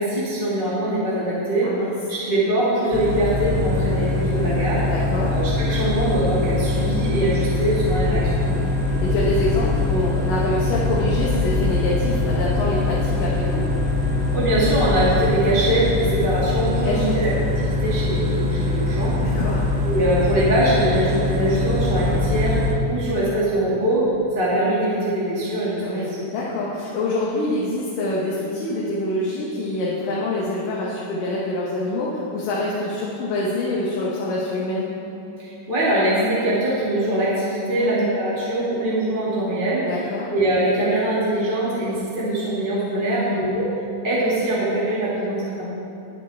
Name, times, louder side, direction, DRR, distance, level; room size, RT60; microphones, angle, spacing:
voice 1, 0.0-1.7 2.1-4.8 5.2-8.4 14.3-17.3 17.6-19.2 19.8-22.6 22.9-24.1 24.4-26.0 35.4-39.9 40.3-43.7 44.0-45.7, right 1 dB, 20° right, -9 dB, 1.7 m, -22 dB
sound 1, 2.9-22.7, left 2 dB, 50° right, 0.4 m, -23 dB
voice 2, 4.8-5.4 8.5-13.6 16.8-17.2 19.2-19.7 25.8-34.9 37.8-38.0 39.8-40.3 43.1-43.4, left 2 dB, 75° left, -6 dB, 2.9 m, -26 dB
21.5 x 8.1 x 3.5 m, 2.8 s
omnidirectional pair, 4.0 m